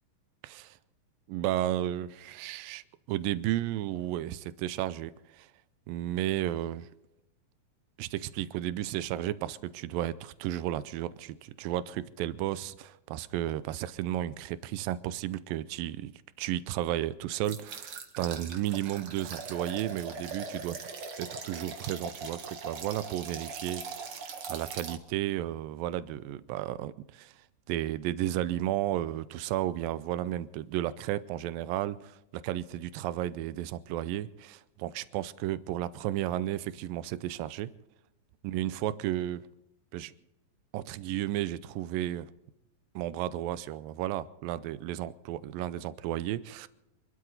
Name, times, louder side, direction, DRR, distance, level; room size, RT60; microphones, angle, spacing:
voice 1, 0.4-0.8 1.3-5.5 5.9-6.9 8.0-16.1 16.4-20.8 21.2-24.2 24.5-27.3 27.7-37.7 38.4-39.4 39.9-40.1 40.7-42.3 43.0-46.7, right 13 dB, 85° right, 2.4 m, -33 dB
sound 1, 17.4-25.0, right 5 dB, 50° right, 1.9 m, -41 dB
27.0 x 13.0 x 4.0 m
omnidirectional pair, 3.9 m